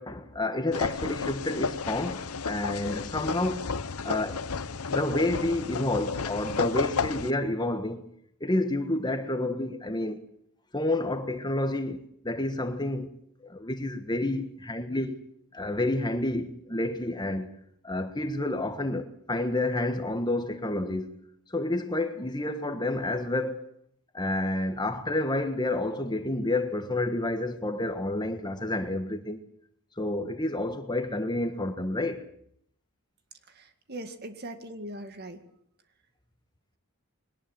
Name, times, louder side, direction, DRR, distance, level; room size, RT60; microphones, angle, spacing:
voice 1, 0.0-3.7 4.0-4.4 4.9-8.0 8.4-10.2 10.7-13.1 13.4-15.2 15.5-17.5 17.8-21.1 21.5-23.6 24.1-29.4 30.0-32.2, left 1 dB, 20° left, 1.4 m, -29 dB
sound 1, 0.7-7.3, left 5 dB, 90° left, 0.9 m, -32 dB
voice 2, 33.5-35.4, right 1 dB, 45° right, 2.1 m, -40 dB
21.5 x 19.0 x 7.7 m
head